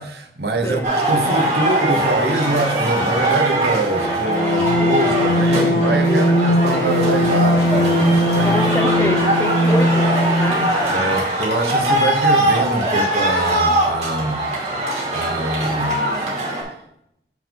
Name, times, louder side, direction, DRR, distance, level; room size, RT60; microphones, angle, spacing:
voice 1, 0.0-8.6 9.0-9.1 10.9-16.0, right 2 dB, 65° right, 1.0 m, -24 dB
sound 1, 0.8-16.6, right 1 dB, 40° right, 2.4 m, -21 dB
sound 2, 3.9-10.7, left 1 dB, 60° left, 0.9 m, -19 dB
voice 2, 6.1-6.9 8.4-10.7, equal, 15° left, 0.6 m, -26 dB
7.4 x 6.0 x 3.6 m
head